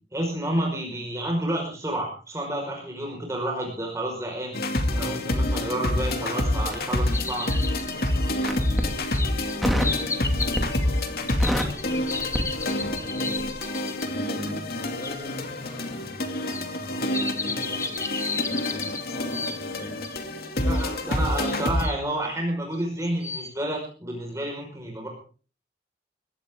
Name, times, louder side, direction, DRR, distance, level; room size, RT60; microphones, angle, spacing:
voice 1, 0.1-4.6 4.9-7.5 20.6-25.1, right 1 dB, 15° right, 0 dB, 5.3 m, -30 dB
sound 1, 4.5-21.9, left 1 dB, 55° left, 2.6 m, -27 dB
voice 2, 5.9-20.1, equal, 35° left, 1 dB, 7.2 m, -43 dB
Crackle, 6.7-7.8 8.4-8.9 9.6-10.0 10.4-10.9 11.2-13.1 13.4-13.6, equal, ahead, 2.5 m, -28 dB
sound 2, 7.1-14.1 15.0-15.1 16.5-20.2 20.7-20.8 21.4-22.1 22.7-23.5, left 4 dB, 15° left, 1.2 m, -34 dB
22.5 x 16.0 x 3.8 m, 0.39 s
head